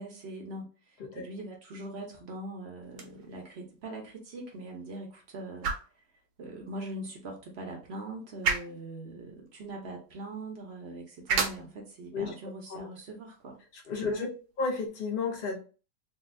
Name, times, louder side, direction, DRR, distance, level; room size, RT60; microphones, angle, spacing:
voice 1, 0.0-5.7 6.4-13.6 14.0-14.2, right 2 dB, 55° right, 1 dB, 0.7 m, -42 dB
sound 1, 2.8-14.9, right 5 dB, 70° right, 1.1 m, -38 dB
voice 2, 13.9-14.3 14.6-15.6, left 4 dB, 55° left, 2 dB, 0.6 m, -32 dB
3.7 x 2.3 x 2.5 m, 0.36 s
omnidirectional pair, 1.8 m